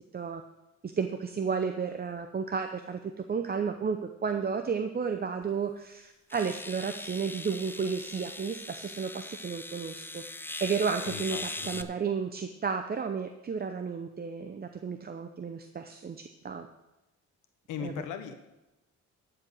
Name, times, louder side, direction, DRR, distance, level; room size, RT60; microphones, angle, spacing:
voice 1, 0.8-3.0 3.3-10.2 10.6-16.7 17.8-17.9, right 5 dB, 30° right, 6 dB, 0.8 m, -32 dB
sound 1, 5.4-5.5 6.3-11.8, left 2 dB, 5° left, 0.6 m, -40 dB
voice 2, 11.1-11.9 17.7-18.3, left 8 dB, 90° left, 7 dB, 1.2 m, -38 dB
12.5 x 5.0 x 8.1 m, 0.98 s
cardioid pair, 90°, 30 cm